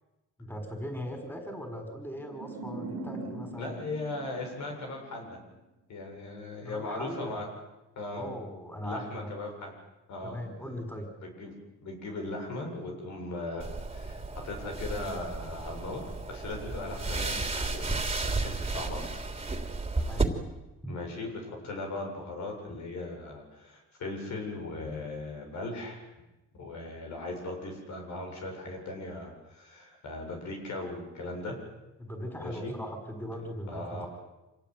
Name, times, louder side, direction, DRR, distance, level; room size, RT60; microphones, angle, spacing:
voice 1, 0.4-3.7 6.6-7.5 8.1-9.3 10.2-11.1 20.0-20.3 20.8-20.9 32.0-34.1, equal, 5° left, 5 dB, 5.5 m, -39 dB
sound 1, 2.2-5.3, right 3 dB, 90° right, 3.5 m, -41 dB
voice 2, 3.6-5.4 5.9-7.4 8.0-8.3 8.8-9.7 10.1-10.4 11.2-11.5 11.8-17.9 18.1-19.1 20.9-26.0 26.5-31.6 32.4-32.7 33.7-34.1, left 2 dB, 70° left, 2 dB, 7.7 m, -38 dB
sound 2, 13.6-20.2, right 3 dB, 20° right, 3.3 m, -33 dB
26.0 x 18.0 x 9.5 m, 1.0 s
cardioid pair, 90°, 30 cm